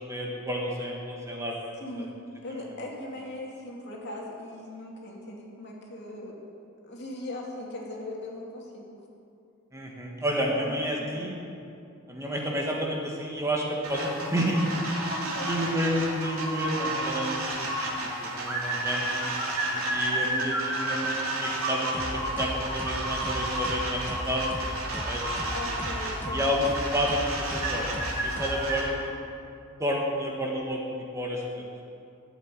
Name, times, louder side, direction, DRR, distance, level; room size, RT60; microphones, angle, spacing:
voice 1, 0.0-2.1 9.7-11.4 12.1-14.6 15.4-19.2 19.9-25.5 26.3-27.9 28.2-29.1 29.8-30.8 31.1-31.6, equal, 15° right, -2 dB, 1.6 m, -30 dB
voice 2, 2.4-6.4 6.9-8.9 10.4-11.3 15.1-15.6 19.7-19.9 25.5-26.4, left 1 dB, 55° left, -2 dB, 2.4 m, -39 dB
sound 1, 13.8-28.8, right 1 dB, 80° right, 2.8 m, -31 dB
sound 2, 21.9-29.1, equal, 10° left, 0.8 m, -38 dB
12.5 x 7.6 x 9.0 m, 2.5 s
head